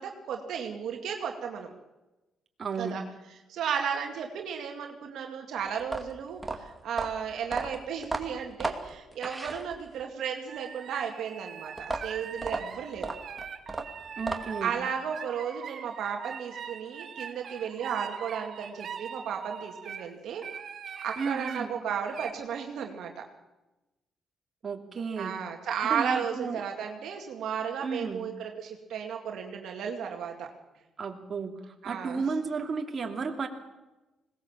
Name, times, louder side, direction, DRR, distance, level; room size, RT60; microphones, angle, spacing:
voice 1, 0.0-1.7 2.8-3.0 3.5-11.7 12.0-13.1 14.6-20.5 21.0-23.2 25.2-30.5 31.8-32.2, right 7 dB, 75° right, 3 dB, 2.2 m, -34 dB
voice 2, 2.6-3.0 14.2-14.8 21.2-21.7 24.6-25.4 25.8-26.6 27.8-28.3 31.0-33.5, right 5 dB, 40° right, 3 dB, 2.8 m, -33 dB
sound 1, 5.8-10.1 11.8-14.7, right 2 dB, 15° right, 2.4 m, -35 dB
sound 2, 10.5-20.1 20.4-21.6 22.0-22.3, right 7 dB, 55° right, 2.4 m, -42 dB
20.5 x 18.5 x 7.4 m, 1.0 s
cardioid pair, 90°, 0 cm